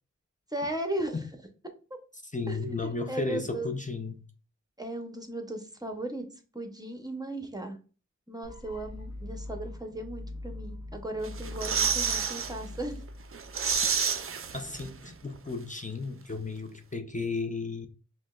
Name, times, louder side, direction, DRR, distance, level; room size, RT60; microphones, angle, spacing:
voice 1, 0.5-1.3 2.5-3.7 4.8-6.3 6.5-7.8 8.3-13.0, right 1 dB, 15° right, 0.7 m, -36 dB
voice 2, 2.3-4.3 14.5-17.9, left 3 dB, 25° left, 0.5 m, -34 dB
sound 1, 8.4-14.4, left 1 dB, 60° left, 0.7 m, -42 dB
sound 2, 11.2-12.5 12.9-13.0 13.3-15.1 15.3-15.4, right 6 dB, 45° right, 0.4 m, -29 dB
5.0 x 2.1 x 2.3 m
wide cardioid pair, 50°, 30 cm